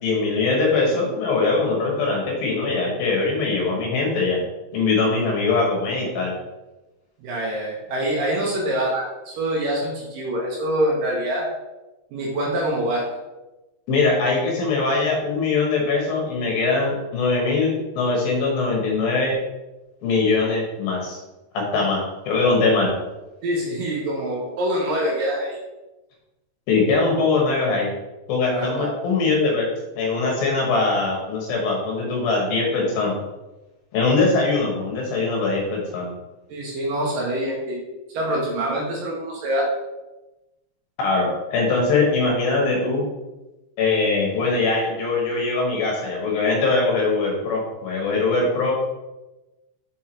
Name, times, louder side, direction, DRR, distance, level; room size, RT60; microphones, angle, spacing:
voice 1, 0.0-4.4 4.7-6.3 13.9-19.4 20.0-21.2 21.5-22.9 26.7-27.9 28.3-29.7 30.0-33.2 33.9-36.1 41.0-43.1 43.8-48.7, left 3 dB, 70° left, -1 dB, 2.8 m, -22 dB
voice 2, 7.2-11.5 12.1-13.1 23.4-25.6 28.5-28.9 36.5-37.8 38.1-39.6, right 1 dB, 65° right, -3 dB, 2.5 m, -25 dB
6.7 x 4.6 x 4.4 m, 1.0 s
omnidirectional pair, 4.7 m